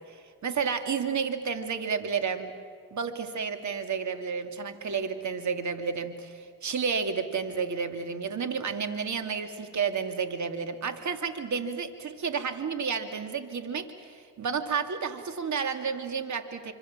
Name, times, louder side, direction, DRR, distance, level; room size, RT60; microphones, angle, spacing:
voice 1, 0.0-2.5 2.9-16.7, right 6 dB, 45° right, 8 dB, 2.7 m, -31 dB
26.5 x 26.5 x 7.5 m, 2.2 s
supercardioid pair, 75°, 39 cm